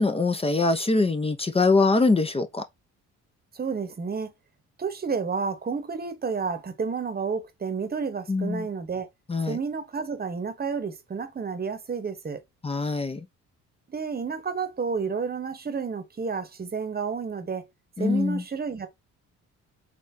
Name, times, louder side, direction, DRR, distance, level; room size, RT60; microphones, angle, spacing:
voice 1, 0.0-2.6 8.3-8.7 9.3-9.6 12.6-13.3 18.0-18.4, left 3 dB, 20° left, 0.6 m, -23 dB
voice 2, 3.5-4.3 4.8-9.1 9.4-12.4 13.9-17.7 18.0-18.9, right 5 dB, 30° right, 1.0 m, -30 dB
4.2 x 3.2 x 2.6 m
cardioid pair, 90°, 30 cm